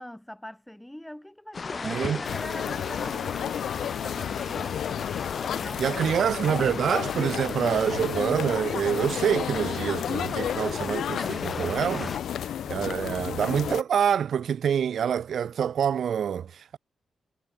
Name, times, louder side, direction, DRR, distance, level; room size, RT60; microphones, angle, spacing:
voice 1, 0.0-5.1 5.5-6.6, left 1 dB, 5° left, 5.3 m, -42 dB
sound 1, 1.5-12.2, left 4 dB, 45° left, 1.5 m, -37 dB
voice 2, 1.8-2.2 5.8-12.1 12.7-16.8, right 8 dB, 75° right, 1.1 m, -26 dB
sound 2, 2.2-13.8, left 10 dB, 85° left, 0.3 m, -32 dB
cardioid pair, 85°, 0 cm